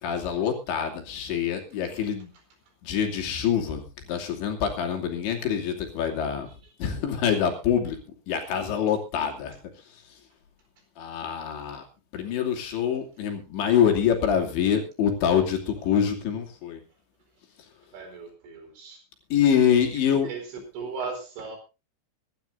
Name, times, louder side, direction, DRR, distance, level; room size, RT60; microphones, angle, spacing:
voice 1, 0.0-2.3 2.8-6.5 6.8-8.0 8.3-9.6 11.0-11.8 12.1-16.8 19.3-20.3, left 8 dB, 70° left, 2 dB, 4.9 m, -25 dB
voice 2, 17.9-19.0 19.9-21.6, right 4 dB, 75° right, 4 dB, 6.7 m, -37 dB
25.5 x 12.0 x 2.7 m, 0.29 s
omnidirectional pair, 5.4 m